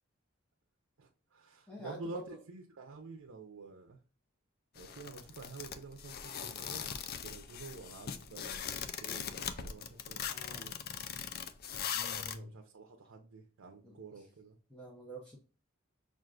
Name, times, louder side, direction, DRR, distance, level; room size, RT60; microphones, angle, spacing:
voice 1, 1.0-4.0 4.7-10.7 12.1-14.6, right 3 dB, 80° right, 0.6 m, -49 dB
voice 2, 1.7-2.4 10.3-10.7 11.9-12.6 13.8-14.2 14.7-15.4, right 1 dB, 5° left, 0.8 m, -47 dB
sound 1, 4.8-12.4, left 8 dB, 50° left, 0.4 m, -40 dB
6.1 x 2.5 x 2.4 m
head